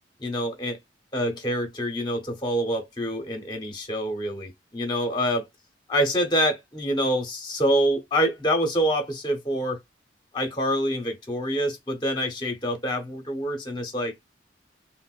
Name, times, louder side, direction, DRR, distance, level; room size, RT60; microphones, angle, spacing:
voice 1, 0.2-0.8 1.1-5.4 5.9-9.8 10.3-14.1, equal, 25° left, 0.8 m, -26 dB
3.6 x 2.1 x 2.4 m
head